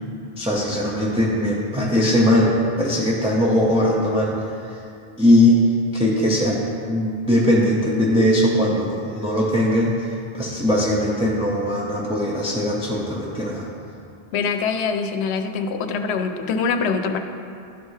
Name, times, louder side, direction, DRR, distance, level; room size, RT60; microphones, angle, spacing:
voice 1, 0.4-4.3 5.2-5.6 5.9-10.1 10.3-13.6, left 1 dB, 5° right, -5 dB, 0.6 m, -20 dB
voice 2, 14.3-17.2, left 5 dB, 80° left, 6 dB, 0.8 m, -24 dB
12.0 x 4.7 x 2.8 m, 2.6 s
omnidirectional pair, 1.1 m